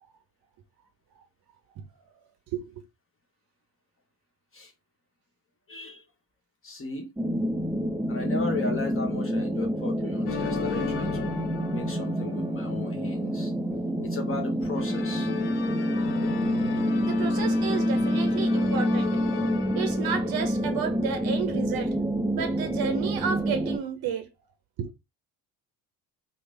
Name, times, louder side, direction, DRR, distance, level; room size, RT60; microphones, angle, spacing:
voice 1, 5.7-6.0 6.6-7.1 8.1-13.5 14.0-15.3, left 3 dB, 25° left, 1.0 m, -36 dB
sound 1, 7.2-23.8, equal, 5° right, 0.4 m, -27 dB
sound 2, 10.3-12.9 14.8-21.0, left 8 dB, 75° left, 0.6 m, -36 dB
voice 2, 17.0-19.4 19.7-21.9 22.3-24.3 24.8-24.9, right 7 dB, 45° right, 0.7 m, -32 dB
3.1 x 2.1 x 3.1 m
hypercardioid pair, 50°, 49 cm